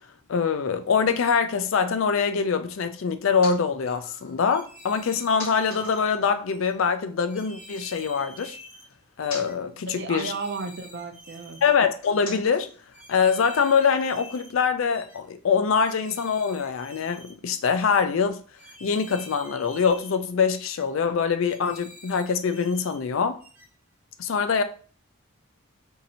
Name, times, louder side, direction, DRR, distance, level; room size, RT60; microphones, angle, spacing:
voice 1, 0.3-8.6 9.2-10.3 11.6-12.7 13.1-18.4 18.8-23.4 24.2-24.6, left 6 dB, 70° left, 0.4 m, -24 dB
sound 1, 2.9-7.5 7.8-14.0, left 4 dB, 85° left, 1.1 m, -46 dB
sound 2, 4.4-6.0 6.5-6.7 7.3-8.9 9.2-9.6 10.1-11.7 12.1-12.4 12.9-14.5 14.9-15.2 15.7-17.3 17.8-18.0 18.6-20.2 20.5-20.9 21.4-23.0 23.4-23.7, left 1 dB, 10° right, 0.8 m, -47 dB
voice 2, 9.7-11.6, right 4 dB, 55° right, 0.5 m, -34 dB
2.7 x 2.6 x 4.1 m
head